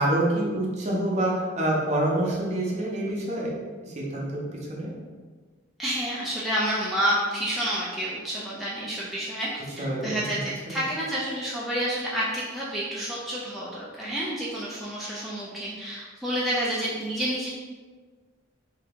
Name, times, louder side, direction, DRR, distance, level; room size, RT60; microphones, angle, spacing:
voice 1, 0.0-3.5 3.8-4.9 9.8-10.8, right 1 dB, 35° right, -4 dB, 0.8 m, -27 dB
voice 2, 5.8-17.5, equal, ahead, -8 dB, 0.4 m, -29 dB
3.4 x 2.8 x 3.5 m, 1.5 s
head